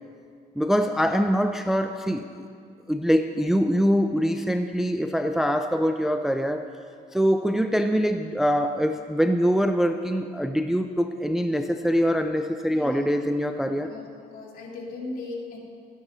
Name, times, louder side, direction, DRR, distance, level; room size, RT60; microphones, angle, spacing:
voice 1, 0.6-2.5 2.9-6.7 7.1-13.9, equal, ahead, 7 dB, 0.4 m, -24 dB
voice 2, 12.7-13.0 13.8-14.0 14.3-15.6, left 2 dB, 60° left, -2 dB, 2.3 m, -37 dB
13.0 x 10.0 x 3.9 m, 2.2 s
cardioid pair, 110°, 17 cm